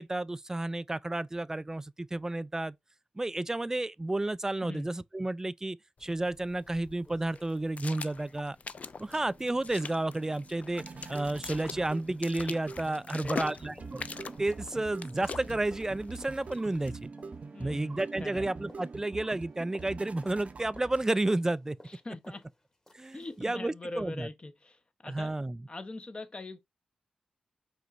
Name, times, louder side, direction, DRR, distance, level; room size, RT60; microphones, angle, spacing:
voice 1, 0.0-2.8 3.2-8.6 9.0-14.0 14.4-17.1 17.6-21.8 22.9-24.3 25.0-25.6, right 2 dB, 20° right, 0.3 m, -31 dB
sound 1, 6.0-17.0, left 5 dB, 55° left, 0.4 m, -44 dB
sound 2, 6.6-6.7 7.0-11.6 11.8-23.4 23.8-23.9, left 1 dB, 25° left, 1.5 m, -58 dB
sound 3, 8.6-21.5, right 4 dB, 55° right, 0.6 m, -45 dB
voice 2, 13.1-13.6 17.5-18.5 21.9-22.4 23.1-25.3 25.7-26.6, left 2 dB, 40° left, 0.9 m, -42 dB
5.1 x 3.1 x 2.5 m
cardioid pair, 45°, 3 cm